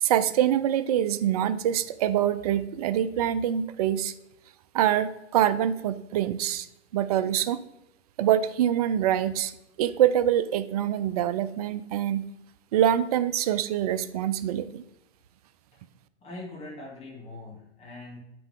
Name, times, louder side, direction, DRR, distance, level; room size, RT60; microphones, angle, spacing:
voice 1, 0.0-4.1 4.7-6.7 6.9-7.6 8.2-9.5 9.8-12.3 12.7-14.8, right 10 dB, 35° right, 14 dB, 0.4 m, -25 dB
voice 2, 16.2-18.2, left 2 dB, 15° left, -4 dB, 2.8 m, -42 dB
8.1 x 5.9 x 3.7 m, 0.86 s
hypercardioid pair, 125°, 34 cm